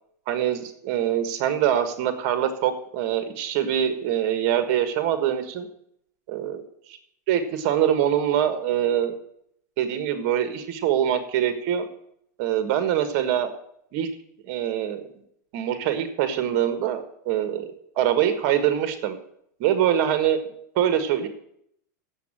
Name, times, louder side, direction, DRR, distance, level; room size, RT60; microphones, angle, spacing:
voice 1, 0.3-5.7 6.3-6.6 6.9-7.0 7.3-9.1 9.8-11.9 12.4-13.5 13.9-14.1 14.5-15.0 15.5-19.2 19.6-20.4 20.7-21.3, right 10 dB, 50° right, 10 dB, 1.4 m, -24 dB
8.2 x 7.4 x 8.7 m, 0.71 s
supercardioid pair, 155°, 10 cm